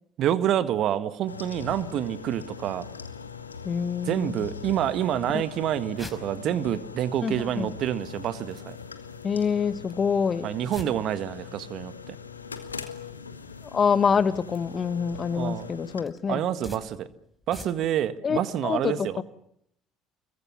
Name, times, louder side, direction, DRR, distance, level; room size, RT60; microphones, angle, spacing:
voice 1, 0.2-2.9 4.0-8.8 10.4-12.1 15.3-15.7 16.3-17.1 17.5-19.2, right 10 dB, 50° right, 1.6 m, -27 dB
sound 1, 1.3-16.0, left 6 dB, 85° left, 1.6 m, -41 dB
voice 2, 3.6-4.5 5.3-5.4 7.2-7.7 9.2-10.5 13.7-16.4 18.2-19.2, left 6 dB, 35° left, 1.1 m, -26 dB
sound 2, 5.9-18.1, left 2 dB, 5° left, 5.1 m, -50 dB
25.5 x 22.5 x 7.1 m
figure-of-eight pair, 55°, 0 cm